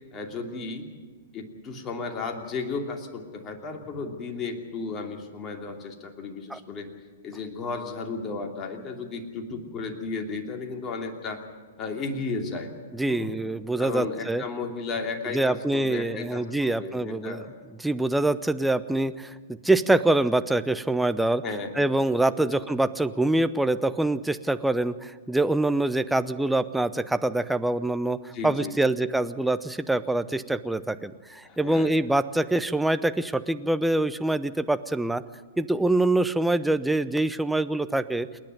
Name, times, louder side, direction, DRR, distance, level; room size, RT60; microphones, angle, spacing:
voice 1, 0.1-0.9 1.3-6.9 7.2-11.4 11.8-12.7 13.1-13.4 13.8-17.5 21.4-21.9 22.4-22.5 28.3-28.7 31.4-31.9, left 4 dB, 25° left, 3 dB, 2.8 m, -34 dB
voice 2, 12.9-14.4 15.3-17.5 17.8-19.4 19.6-21.4 21.8-35.2 35.6-38.3, right 2 dB, 5° right, 12 dB, 0.7 m, -25 dB
28.5 x 10.5 x 9.6 m, 1.5 s
figure-of-eight pair, 110°, 0 cm